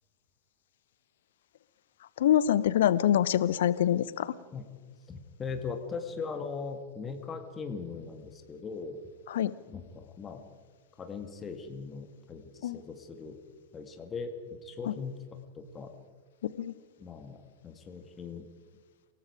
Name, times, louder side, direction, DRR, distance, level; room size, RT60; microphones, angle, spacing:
voice 1, 2.2-4.3 9.3-9.5 12.6-12.8 14.9-15.0 16.4-16.7, left 11 dB, 60° left, 17 dB, 0.9 m, -25 dB
voice 2, 5.1-9.0 9.7-10.4 11.0-13.4 13.7-15.2 15.5-15.9 17.0-18.5, left 5 dB, 20° left, 6 dB, 2.1 m, -39 dB
29.0 x 18.5 x 4.9 m, 1.5 s
figure-of-eight pair, 90°, 0 cm